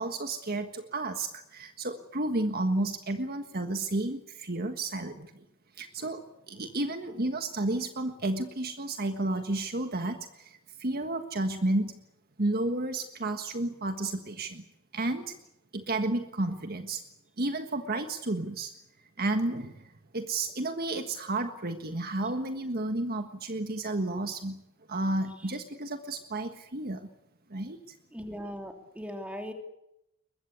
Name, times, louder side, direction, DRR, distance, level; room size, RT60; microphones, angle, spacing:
voice 1, 0.0-5.3 5.8-12.0 12.4-14.6 14.9-15.3 15.7-17.0 17.4-18.7 19.2-24.6 24.9-27.1 27.5-27.9, right 2 dB, 45° right, 8 dB, 1.5 m, -32 dB
voice 2, 28.1-29.5, equal, 5° right, 4 dB, 3.2 m, -39 dB
22.5 x 21.5 x 8.3 m, 0.83 s
head